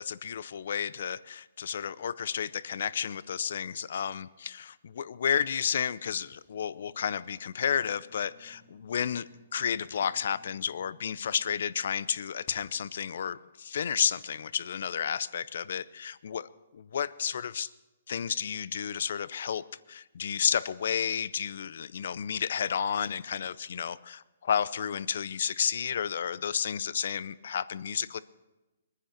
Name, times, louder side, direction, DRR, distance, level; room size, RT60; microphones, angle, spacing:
voice 1, 0.0-17.7 18.1-28.2, left 8 dB, 65° left, 18 dB, 0.6 m, -32 dB
sound 1, 6.2-12.9, left 3 dB, 40° left, 1.6 m, -60 dB
21.5 x 10.0 x 5.8 m, 1.1 s
hypercardioid pair, 155°, 0 cm